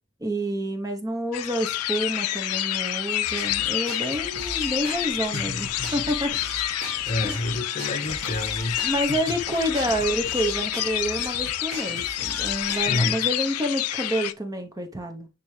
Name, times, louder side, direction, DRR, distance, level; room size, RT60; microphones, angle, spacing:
voice 1, 0.2-6.4 7.2-7.5 8.8-15.3, equal, 15° right, 0.9 m, -28 dB
sound 1, 1.3-14.3, left 14 dB, 90° left, 0.4 m, -28 dB
sound 2, 3.2-13.1, right 3 dB, 70° right, 1.4 m, -40 dB
voice 2, 5.3-6.0 7.1-9.4 11.9-12.0 12.9-13.2, left 1 dB, 35° left, 0.6 m, -30 dB
sound 3, 6.0-6.4 6.8-13.4, left 3 dB, 70° left, 2.1 m, -48 dB
9.8 x 3.4 x 3.3 m
head